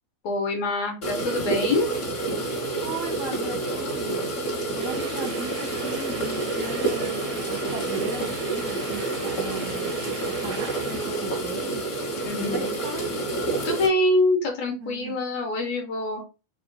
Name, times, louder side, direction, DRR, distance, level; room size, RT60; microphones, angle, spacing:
voice 1, 0.2-1.9 12.2-12.7 13.6-16.2, left 2 dB, 70° left, 1 dB, 1.9 m, -25 dB
sound 1, 1.0-13.9, right 2 dB, 35° left, 1.2 m, -28 dB
voice 2, 2.8-4.2 4.7-11.8 12.2-13.1 14.8-15.2, right 3 dB, 55° right, 3 dB, 1.1 m, -37 dB
sound 2, 4.8-11.2, right 9 dB, 80° right, 1.8 m, -41 dB
5.1 x 2.5 x 3.9 m, 0.30 s
omnidirectional pair, 3.6 m